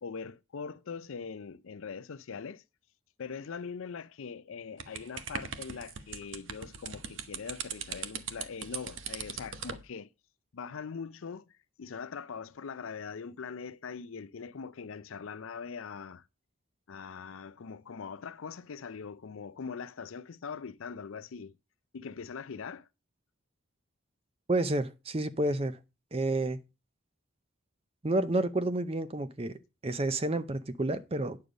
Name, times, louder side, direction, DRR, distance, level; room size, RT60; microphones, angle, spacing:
voice 1, 0.0-2.6 3.2-10.1 10.5-11.5 11.8-16.2 16.9-21.5 21.9-22.9, left 5 dB, 70° left, 0.5 m, -42 dB
sound 1, 4.8-9.8, right 7 dB, 65° right, 0.9 m, -40 dB
voice 2, 24.5-25.8 26.1-26.6 28.0-29.5 29.8-31.4, right 2 dB, 25° right, 0.6 m, -30 dB
9.5 x 6.7 x 5.0 m
head